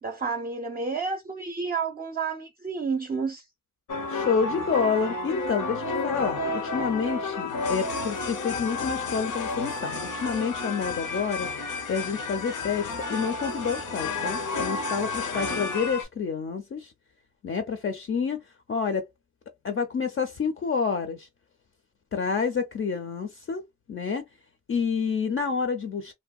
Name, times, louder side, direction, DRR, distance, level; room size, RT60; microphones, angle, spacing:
voice 1, 0.0-3.5, right 5 dB, 30° right, 0.5 m, -30 dB
sound 1, 3.9-16.0, left 3 dB, 90° left, 0.7 m, -31 dB
voice 2, 4.1-11.5 11.9-16.9 17.4-18.4 18.7-19.1 19.6-21.3 22.1-23.6 23.9-24.3 24.7-26.1, left 5 dB, 45° left, 0.5 m, -28 dB
2.6 x 2.2 x 2.3 m
wide cardioid pair, 90°, 30 cm